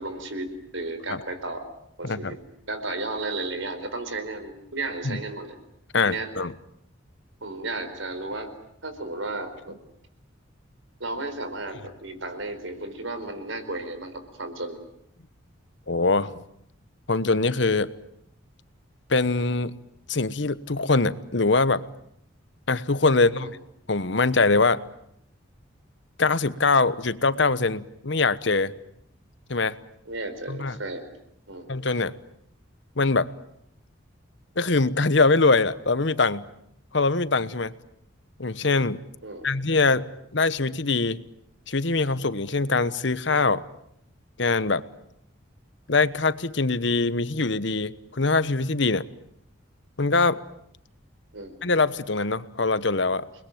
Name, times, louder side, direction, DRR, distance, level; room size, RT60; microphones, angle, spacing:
voice 1, 0.0-1.7 2.0-2.4 2.7-5.6 6.0-6.3 7.4-8.5 8.8-9.8 11.0-14.8 23.1-23.5 30.1-31.0 31.5-31.7 39.2-39.5 51.3-51.5, right 2 dB, 75° right, 9 dB, 4.6 m, -33 dB
voice 2, 2.0-2.3 5.0-5.2 5.9-6.5 15.9-16.3 17.1-17.9 19.1-19.7 20.1-21.8 22.7-23.6 23.9-24.8 26.2-28.7 29.5-29.8 30.5-30.8 31.7-32.1 33.0-33.3 34.6-36.5 36.9-37.7 38.4-39.0 39.4-40.0 40.3-41.2 41.7-43.6 44.4-44.8 45.9-49.1 50.0-50.4 51.6-53.2, left 3 dB, 65° left, 14 dB, 1.1 m, -23 dB
30.0 x 21.0 x 9.2 m, 0.75 s
head